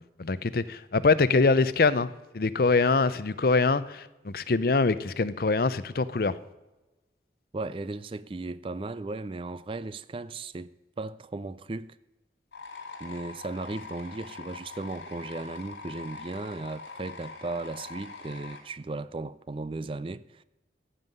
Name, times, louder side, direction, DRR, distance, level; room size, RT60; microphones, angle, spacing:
voice 1, 0.2-6.4, left 3 dB, 55° left, 0.6 m, -24 dB
voice 2, 7.5-12.0 13.0-20.4, right 3 dB, 30° right, 0.4 m, -36 dB
sound 1, 12.5-18.6, left 4 dB, 80° left, 2.5 m, -43 dB
15.0 x 5.6 x 9.2 m
head